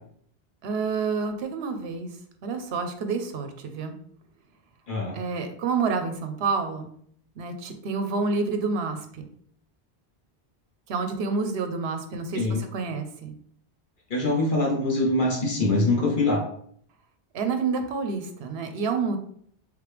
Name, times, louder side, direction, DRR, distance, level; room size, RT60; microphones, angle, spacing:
voice 1, 0.6-2.1 2.4-3.9 5.1-6.9 7.4-9.3 10.9-13.3 17.3-19.2, right 4 dB, 75° right, 6 dB, 0.9 m, -28 dB
voice 2, 4.9-5.2 12.3-12.6 14.1-16.4, left 2 dB, 50° left, -1 dB, 1.1 m, -23 dB
3.6 x 3.2 x 3.3 m, 0.63 s
omnidirectional pair, 1.1 m